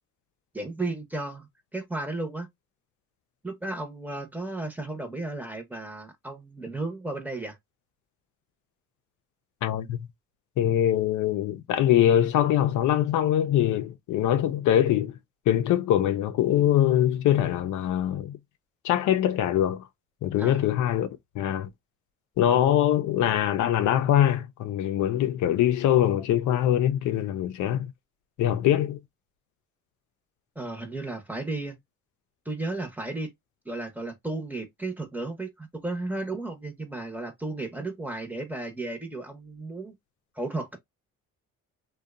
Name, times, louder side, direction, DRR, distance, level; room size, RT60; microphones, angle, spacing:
voice 1, 0.5-2.5 3.4-7.6 20.4-20.6 30.6-31.8 32.5-33.3 33.6-39.9 40.4-40.8, right 2 dB, 5° right, 0.8 m, -34 dB
voice 2, 9.6-10.1 10.6-15.1 15.5-18.4 18.8-19.8 20.2-21.1 21.4-21.7 22.4-27.9 28.4-29.0, left 11 dB, 75° left, 0.5 m, -23 dB
2.6 x 2.2 x 2.3 m
cardioid pair, 90°, 30 cm